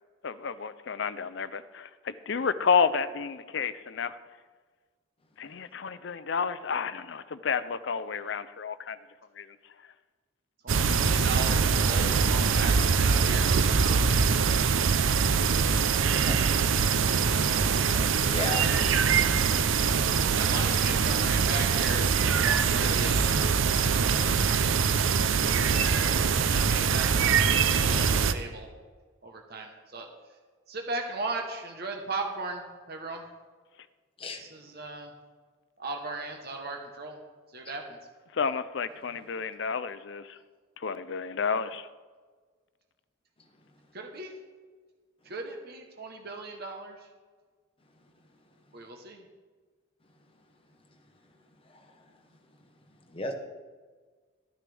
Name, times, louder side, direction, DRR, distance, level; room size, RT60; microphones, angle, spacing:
voice 1, 0.2-4.2 5.4-9.0 9.4-9.5 38.3-40.2 40.8-41.9, left 6 dB, 60° left, 13 dB, 0.5 m, -30 dB
voice 2, 10.6-14.0 18.2-18.8 20.3-22.1 22.3-23.4 25.9-26.2 26.5-28.7 29.2-30.1 30.7-33.2 34.4-35.1 35.8-37.2 37.5-38.0 43.9-44.3 45.2-47.1 48.7-49.2, right 3 dB, 50° right, 3 dB, 1.1 m, -37 dB
sound 1, 10.7-28.3, right 6 dB, 70° right, 0.6 m, -24 dB
voice 3, 17.1-17.4 17.7-18.6 34.2-34.4 51.7-51.9 53.1-53.3, left 2 dB, 25° left, 3 dB, 1.2 m, -36 dB
13.0 x 9.5 x 3.4 m, 1.5 s
head